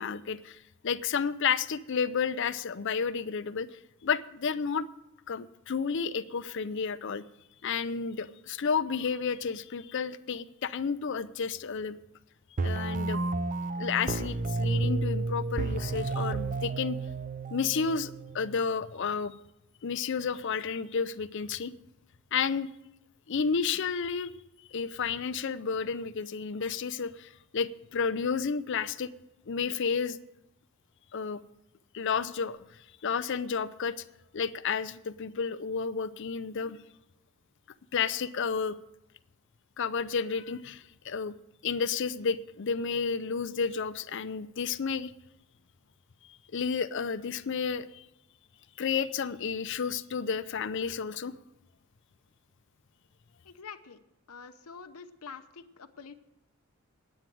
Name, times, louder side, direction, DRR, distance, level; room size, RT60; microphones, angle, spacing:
voice 1, 0.0-3.7 4.0-4.9 5.3-7.2 7.6-12.0 12.6-13.2 13.8-17.0 17.5-19.3 19.8-21.7 22.3-22.7 23.3-24.3 24.7-29.1 29.5-30.2 31.1-31.4 31.9-32.6 33.0-33.9 34.3-36.8 37.9-38.8 39.8-41.3 41.6-45.1 46.5-48.0 48.8-51.3, left 6 dB, 55° left, 14 dB, 0.5 m, -31 dB
sound 1, 12.6-18.6, right 3 dB, 35° right, 0.5 m, -31 dB
voice 2, 53.4-54.0 54.3-56.1, left 5 dB, 85° left, 8 dB, 0.9 m, -46 dB
9.8 x 8.9 x 7.5 m, 0.91 s
head